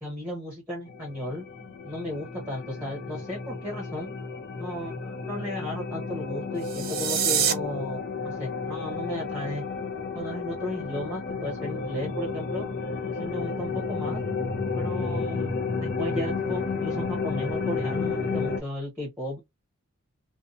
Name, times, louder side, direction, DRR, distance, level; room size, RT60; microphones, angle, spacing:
voice 1, 0.0-1.4 1.8-4.2 4.6-9.6 10.1-12.7 13.1-14.2 14.8-15.5 15.8-19.4, left 1 dB, 10° right, 0.9 m, -35 dB
sound 1, 0.9-18.6, left 4 dB, 50° left, 0.5 m, -32 dB
sound 2, 6.6-7.5, right 8 dB, 45° right, 0.6 m, -25 dB
2.7 x 2.2 x 2.5 m
head